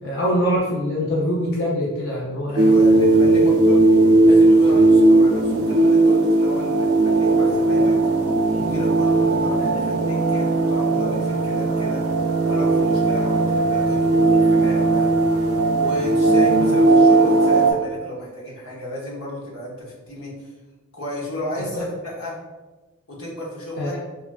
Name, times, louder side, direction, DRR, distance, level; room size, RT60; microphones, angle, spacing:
voice 1, 0.0-2.7 3.2-3.5 21.8-21.9 23.8-24.0, equal, 60° left, -5 dB, 0.5 m, -24 dB
voice 2, 2.5-3.8 4.3-8.0 8.5-12.0 12.5-15.3 15.7-20.5 20.9-22.4 23.1-24.0, left 1 dB, 85° left, -5 dB, 0.8 m, -33 dB
sound 1, 2.6-17.7, right 2 dB, 85° right, 0.4 m, -17 dB
3.1 x 2.3 x 2.2 m, 1.2 s
head